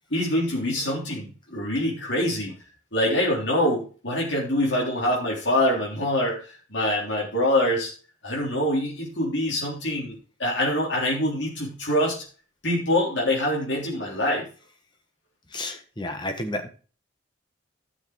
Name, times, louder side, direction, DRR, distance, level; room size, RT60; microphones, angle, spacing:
voice 1, 0.1-2.5 2.9-7.9 8.2-12.2 12.6-14.5, left 1 dB, 60° left, -4 dB, 3.8 m, -25 dB
voice 2, 15.5-16.7, left 1 dB, 20° left, 6 dB, 1.5 m, -31 dB
12.0 x 6.6 x 4.7 m, 0.37 s
head